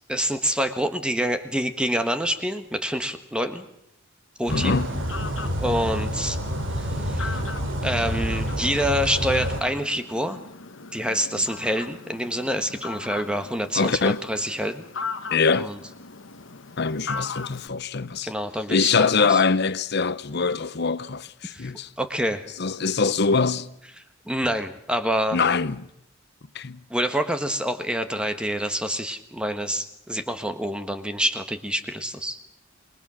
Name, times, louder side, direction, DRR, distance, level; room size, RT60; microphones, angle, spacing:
voice 1, 0.1-3.6 4.4-4.7 5.6-6.4 6.8-7.4 7.8-10.4 10.9-14.8 15.6-15.8 18.2-19.4 21.5-22.5 24.2-25.4 26.9-32.4, equal, 5° right, 1.3 m, -27 dB
Fowl, 4.4-17.7, left 4 dB, 70° left, 1.1 m, -39 dB
voice 2, 4.5-5.0 13.7-14.2 15.3-15.7 16.8-18.3 18.7-21.9 22.6-23.7 25.3-25.9 26.5-26.8, left 4 dB, 55° left, 0.8 m, -23 dB
sound 1, 4.5-9.6, equal, 70° right, 2.9 m, -28 dB
27.0 x 22.0 x 6.3 m
head